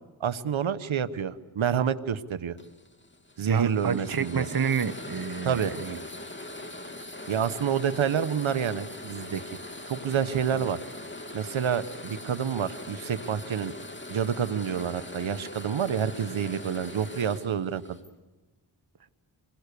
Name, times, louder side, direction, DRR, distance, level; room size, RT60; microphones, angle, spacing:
voice 1, 0.2-2.6 3.4-4.5 5.4-5.7 7.3-9.4 9.9-10.8 11.3-13.7 14.1-18.0, right 8 dB, 80° right, 12 dB, 1.3 m, -28 dB
sound 1, 2.6-18.1, left 1 dB, 25° left, 3.0 m, -41 dB
voice 2, 3.5-6.0, right 6 dB, 50° right, 12 dB, 1.3 m, -29 dB
28.0 x 21.5 x 6.9 m, 1.2 s
cardioid pair, 45°, 47 cm